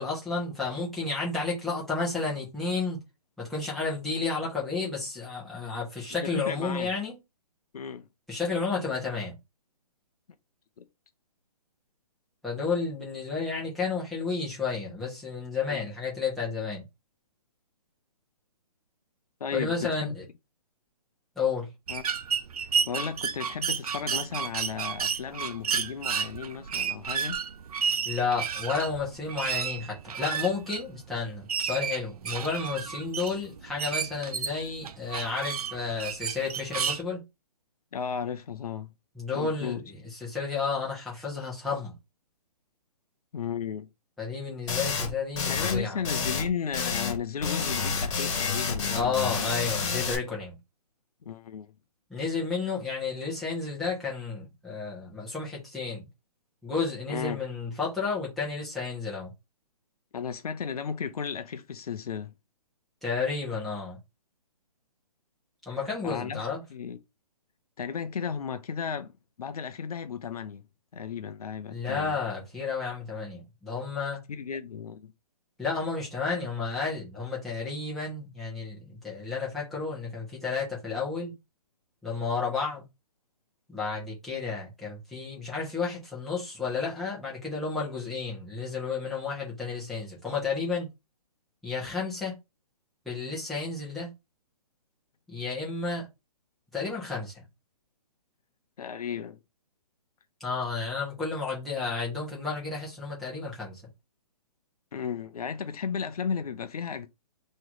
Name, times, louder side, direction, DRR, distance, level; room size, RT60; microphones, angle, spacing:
voice 1, 0.0-3.0 3.4-7.1 8.3-9.3 12.4-16.8 19.5-20.2 21.4-21.7 28.0-37.2 39.2-39.8 40.2-41.9 44.2-46.0 48.9-50.6 52.1-56.1 56.6-59.3 63.0-64.0 65.7-66.6 71.7-74.2 75.6-81.3 82.0-82.8 83.7-90.9 91.6-92.4 93.0-94.1 95.3-96.1 96.7-97.3 100.4-103.8, left 4 dB, ahead, 1.2 m, -31 dB
voice 2, 6.2-6.9 7.7-8.1 10.8-10.9 15.7-15.9 19.4-20.2 21.9-22.0 22.9-27.4 37.9-38.9 39.3-39.8 43.3-43.9 45.5-49.4 51.2-51.7 57.1-57.4 60.1-62.3 65.7-67.0 67.8-69.1 69.4-70.6 70.9-72.2 74.3-75.1 98.8-99.4 104.9-107.1, left 7 dB, 70° left, 0.6 m, -34 dB
sound 1, 21.9-37.0, right 7 dB, 70° right, 0.5 m, -32 dB
sound 2, 44.7-45.1 45.4-45.8 46.0-46.5 46.7-47.2 47.4-50.2, left 5 dB, 50° left, 1.5 m, -29 dB
3.1 x 3.0 x 3.9 m
hypercardioid pair, 165°, 20 cm